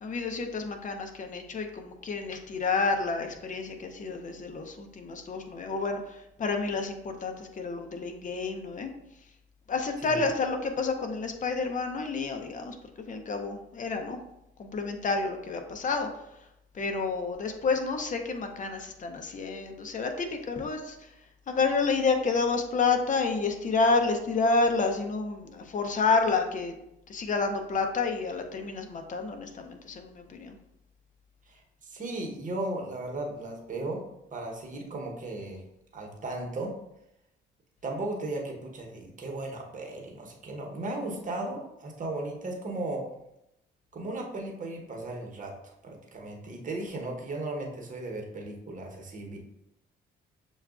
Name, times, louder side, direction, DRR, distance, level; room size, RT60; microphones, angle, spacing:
voice 1, 0.0-8.9 9.7-12.8 13.1-14.2 14.6-16.1 16.7-21.0 21.5-26.7 27.1-30.6, left 4 dB, 40° left, 5 dB, 0.6 m, -29 dB
voice 2, 31.5-34.0 34.3-35.6 35.9-36.7 37.8-43.0 43.9-49.4, right 2 dB, 40° right, 0 dB, 1.0 m, -36 dB
6.8 x 2.3 x 2.4 m, 0.85 s
cardioid pair, 90°, 20 cm